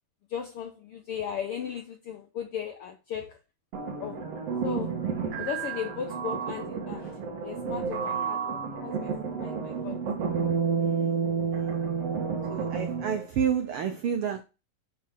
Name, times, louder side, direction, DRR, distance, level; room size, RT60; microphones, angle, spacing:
voice 1, 0.3-3.4 4.0-4.2 4.6-5.0 5.3-9.1 9.4-10.0, left 8 dB, 80° left, 1.3 m, -37 dB
sound 1, 3.7-13.3, right 6 dB, 55° right, 2.4 m, -30 dB
voice 2, 8.1-8.6 10.8-11.8 12.5-14.4, right 7 dB, 90° right, 1.2 m, -31 dB
8.6 x 4.2 x 5.6 m
omnidirectional pair, 3.6 m